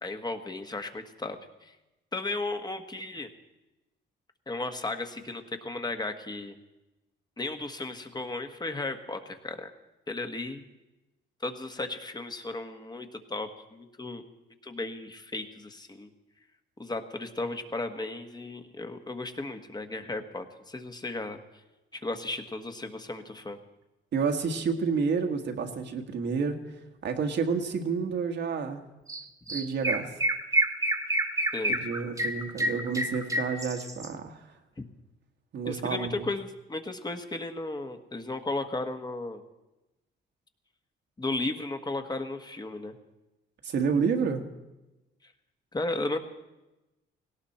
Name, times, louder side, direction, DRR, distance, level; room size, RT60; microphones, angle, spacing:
voice 1, 0.0-1.8 2.1-3.3 4.5-6.6 7.4-9.7 10.1-10.6 11.4-14.2 14.6-16.1 16.8-21.4 21.9-23.6 31.5-31.8 34.8-34.9 35.6-39.4 41.2-42.9 45.2-45.3 45.7-46.2, left 2 dB, 20° left, 7 dB, 1.4 m, -35 dB
voice 2, 24.1-28.8 29.5-30.1 31.7-34.5 35.5-36.3 43.6-44.4, right 5 dB, 65° right, 4 dB, 1.7 m, -29 dB
Chirp tweet, 29.1-29.2 29.5-34.1, right 1 dB, 15° right, 1.4 m, -28 dB
18.0 x 17.0 x 4.3 m, 1.0 s
cardioid pair, 90°, 20 cm